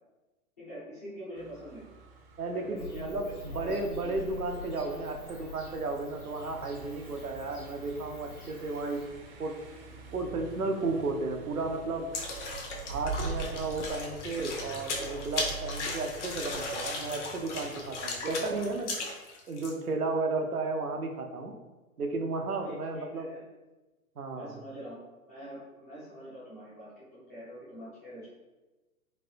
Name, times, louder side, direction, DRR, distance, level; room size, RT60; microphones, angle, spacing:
voice 1, 0.6-1.9 2.5-4.3 22.6-23.4 24.3-25.0 25.3-28.3, equal, 15° left, -10 dB, 0.3 m, -44 dB
Car passing by, 1.4-18.8, right 4 dB, 45° right, 0.5 m, -45 dB
voice 2, 2.4-9.0 9.4-9.6 10.1-12.1 12.9-18.9 19.5-21.5 22.0-23.3 24.2-24.5, right 3 dB, 90° right, 3 dB, 0.6 m, -33 dB
Bird / Cricket, 2.8-9.0, left 3 dB, 85° left, 1.4 m, -46 dB
sound 1, 12.1-19.7, left 3 dB, 55° left, 0.8 m, -37 dB
3.2 x 2.6 x 2.6 m, 1.1 s
figure-of-eight pair, 110°, 43 cm